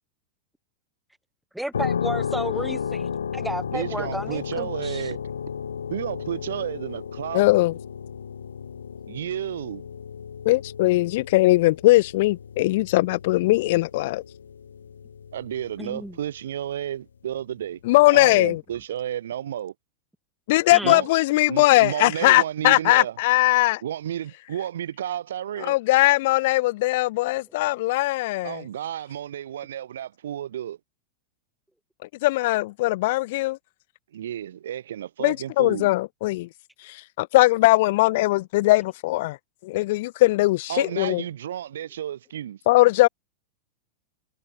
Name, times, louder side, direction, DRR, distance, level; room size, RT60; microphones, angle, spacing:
voice 1, 1.5-5.1 15.8-16.2 20.7-21.0, right 1 dB, ahead, 7.4 m, -33 dB
sound 1, 1.7-16.4, left 7 dB, 70° left, 1.1 m, -34 dB
voice 2, 3.7-5.2 5.9-7.6 9.1-9.8 15.3-17.8 18.1-19.7 20.8-21.1 21.5-23.1 23.8-25.8 28.4-30.8 34.1-35.9 40.7-42.6, right 10 dB, 60° right, 1.1 m, -32 dB
voice 3, 7.3-7.7 10.4-14.2 17.8-18.6 20.5-23.8 25.6-28.6 32.2-33.6 35.2-36.5 36.8-39.4 39.6-41.2 42.7-43.1, left 19 dB, 50° left, 0.8 m, -20 dB
figure-of-eight pair, 90°, 0 cm